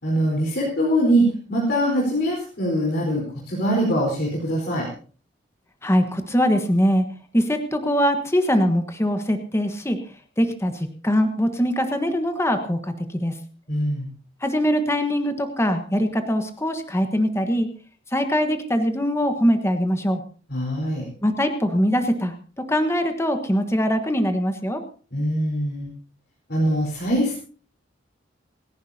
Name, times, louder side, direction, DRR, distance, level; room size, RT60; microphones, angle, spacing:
voice 1, 0.0-4.9 13.7-14.1 20.5-21.1 25.1-25.9 26.5-27.4, equal, 60° left, -4 dB, 4.4 m, -23 dB
voice 2, 5.8-7.0 7.3-10.0 10.4-13.4 14.4-17.7 18.1-20.2 21.2-24.8, equal, 15° left, 7 dB, 1.3 m, -22 dB
28.5 x 11.0 x 2.8 m, 0.40 s
head